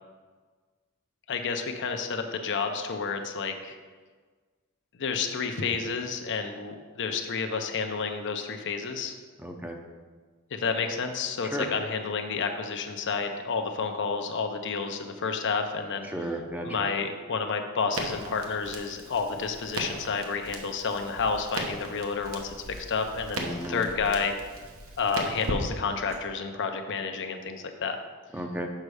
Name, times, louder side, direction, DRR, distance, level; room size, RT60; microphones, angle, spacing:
voice 1, 1.3-3.8 5.0-9.1 10.5-16.1 16.6-24.4 25.0-28.0, left 5 dB, 60° left, 5 dB, 0.6 m, -30 dB
voice 2, 9.4-9.8 11.4-11.7 16.1-16.9 23.4-23.8 28.3-28.7, right 1 dB, 10° right, 3 dB, 0.6 m, -34 dB
Crackle, 17.9-26.2, right 2 dB, 70° right, 1.0 m, -38 dB
6.5 x 5.3 x 4.8 m, 1.4 s
head